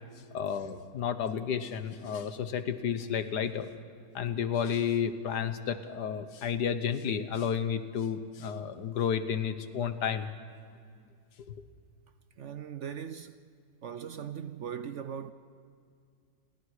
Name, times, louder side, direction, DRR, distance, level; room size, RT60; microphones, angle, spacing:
voice 1, 0.3-3.7 4.1-10.3 11.4-11.5, left 7 dB, 80° left, 1.7 m, -31 dB
voice 2, 12.4-13.4 13.8-15.3, right 8 dB, 60° right, 0.8 m, -39 dB
30.0 x 22.5 x 4.9 m
omnidirectional pair, 1.7 m